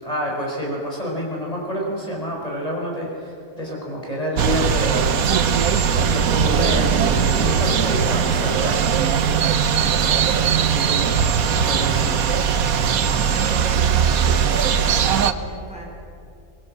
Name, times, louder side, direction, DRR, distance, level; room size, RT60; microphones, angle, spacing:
voice 1, 0.0-5.1 6.0-8.9 11.6-12.3, equal, 25° left, -2 dB, 5.0 m, -28 dB
sound 1, 4.4-15.3, right 7 dB, 85° right, 1.4 m, -19 dB
voice 2, 7.8-12.1 12.7-15.8, equal, 5° right, -2 dB, 4.8 m, -39 dB
24.0 x 22.5 x 7.7 m, 2.4 s
omnidirectional pair, 1.5 m